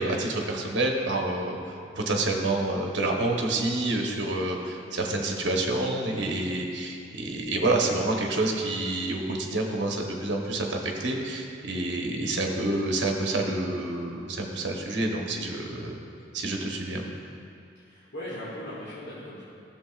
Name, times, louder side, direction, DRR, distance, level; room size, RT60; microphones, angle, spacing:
voice 1, 0.0-16.0 16.3-17.0, right 2 dB, 75° right, 1 dB, 0.9 m, -28 dB
voice 2, 17.8-19.4, left 1 dB, 75° left, -10 dB, 1.6 m, -38 dB
13.0 x 6.9 x 2.3 m, 2.4 s
head